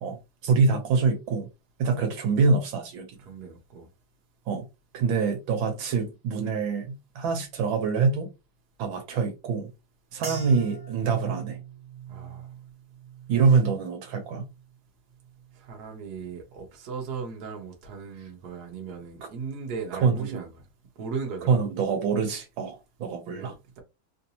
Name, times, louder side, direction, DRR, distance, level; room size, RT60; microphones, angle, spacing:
voice 1, 0.0-1.5 1.8-3.1 4.5-4.6 4.9-8.3 8.8-9.7 10.1-11.6 13.3-14.4 20.0-20.4 21.5-23.5, right 5 dB, 80° right, 1.6 m, -25 dB
voice 2, 3.2-3.9 10.2-10.4 12.1-12.5 15.6-20.6 21.0-21.6 23.3-23.8, right 5 dB, 60° right, 1.3 m, -37 dB
sound 1, 10.2-14.8 15.1-15.7 16.3-16.6, right 7 dB, 45° right, 1.7 m, -41 dB
3.7 x 2.6 x 2.8 m
omnidirectional pair, 2.2 m